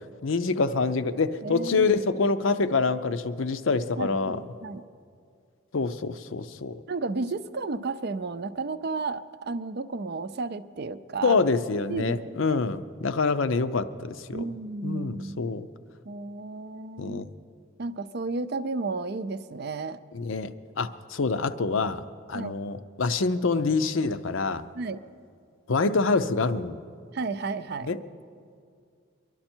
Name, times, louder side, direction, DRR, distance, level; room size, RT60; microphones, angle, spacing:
voice 1, 0.2-4.4 5.7-6.8 11.2-14.4 14.8-15.7 17.0-17.2 20.1-22.0 22.3-24.6 25.7-26.8 27.8-28.0, left 4 dB, 70° left, 12 dB, 0.6 m, -26 dB
voice 2, 1.4-1.9 4.0-4.8 6.9-11.4 11.9-12.6 14.3-15.5 16.1-17.3 17.8-20.0 22.3-22.6 24.7-25.0 27.1-27.9, right 3 dB, 50° right, 13 dB, 0.5 m, -33 dB
24.0 x 11.5 x 4.4 m, 2.2 s
head